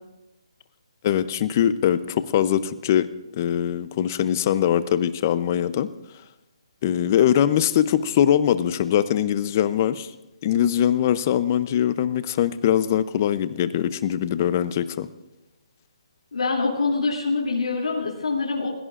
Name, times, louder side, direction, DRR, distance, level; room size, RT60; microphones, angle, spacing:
voice 1, 1.0-3.1 3.4-5.9 6.8-10.1 10.4-15.1, left 10 dB, 25° left, 14 dB, 0.6 m, -22 dB
voice 2, 16.3-18.7, left 4 dB, 80° left, -2 dB, 2.9 m, -24 dB
29.5 x 16.0 x 2.5 m, 1.0 s
hypercardioid pair, 170°, 3 cm